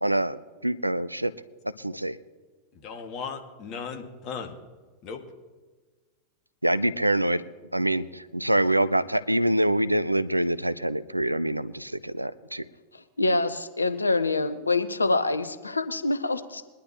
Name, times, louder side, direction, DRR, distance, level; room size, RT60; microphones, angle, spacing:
voice 1, 0.0-1.3 1.8-2.2 6.6-7.4 7.7-12.6, right 1 dB, 85° right, 16 dB, 0.5 m, -25 dB
voice 2, 2.7-4.6 5.0-5.2, left 5 dB, 40° left, 4 dB, 2.0 m, -37 dB
voice 3, 13.2-16.6, left 2 dB, 80° left, 12 dB, 0.7 m, -25 dB
22.0 x 11.5 x 3.0 m, 1.4 s
figure-of-eight pair, 90°, 0 cm